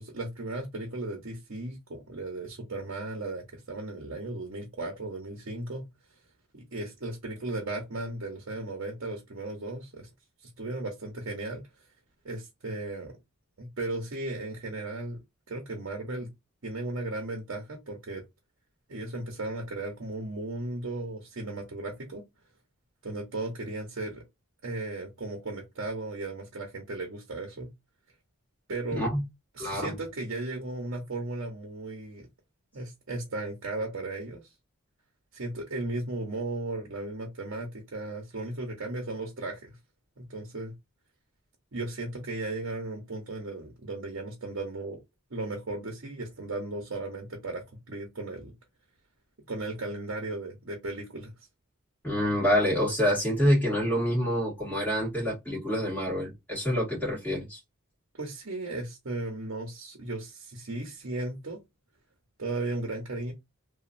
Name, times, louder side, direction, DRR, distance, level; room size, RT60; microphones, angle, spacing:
voice 1, 0.0-5.8 6.5-10.1 10.4-11.6 12.2-13.1 13.6-15.2 15.5-16.3 16.6-18.2 18.9-22.2 23.0-24.2 24.6-27.7 28.7-29.0 29.6-32.3 32.7-34.4 35.3-39.8 40.2-40.7 41.7-45.0 45.3-48.5 49.5-51.3 58.1-61.6 62.4-63.3, right 2 dB, 65° right, 0.9 m, -36 dB
voice 2, 29.6-29.9 52.0-57.6, equal, 10° left, 1.6 m, -27 dB
2.9 x 2.3 x 2.5 m
head